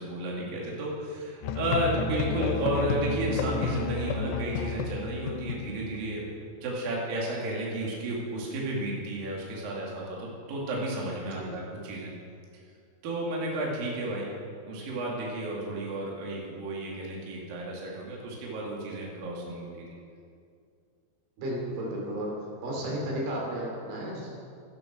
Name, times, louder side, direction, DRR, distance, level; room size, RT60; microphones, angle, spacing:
voice 1, 0.0-6.2 6.6-12.1 13.0-14.3 14.7-19.9, right 1 dB, 55° right, -3 dB, 3.8 m, -32 dB
Musical instrument, 1.4-6.2, left 4 dB, 75° left, 3.0 m, -31 dB
voice 2, 21.4-22.3 22.6-24.4, right 1 dB, 85° right, -2 dB, 5.5 m, -33 dB
13.0 x 12.5 x 6.4 m, 2.3 s
omnidirectional pair, 5.3 m